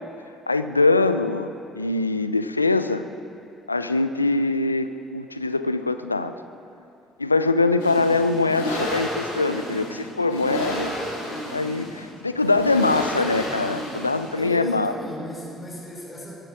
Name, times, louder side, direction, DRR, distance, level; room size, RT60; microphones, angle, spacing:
voice 1, 0.5-3.0 3.7-6.3 7.2-10.9 11.5-14.9, left 3 dB, 90° left, 11 dB, 0.4 m, -23 dB
sound 1, 7.8-14.6, left 1 dB, 75° left, 3.0 m, -31 dB
voice 2, 12.7-13.5 14.4-16.3, left 1 dB, 25° left, -2 dB, 4.4 m, -36 dB
23.0 x 11.5 x 4.9 m, 2.6 s
figure-of-eight pair, 50°, 0 cm